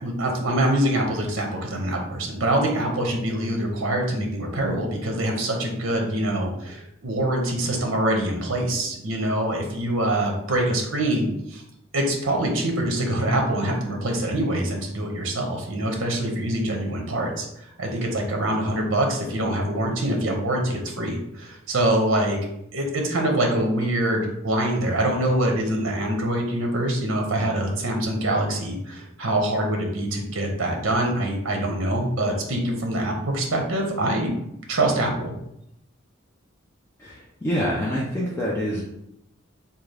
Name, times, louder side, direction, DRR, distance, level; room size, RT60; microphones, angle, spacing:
voice 1, 0.0-11.6 11.9-22.4 22.7-34.4 34.7-35.3, right 1 dB, 70° right, 2 dB, 0.7 m, -24 dB
voice 2, 37.0-38.8, equal, 10° left, -5 dB, 0.4 m, -26 dB
3.6 x 2.3 x 3.3 m, 0.79 s
head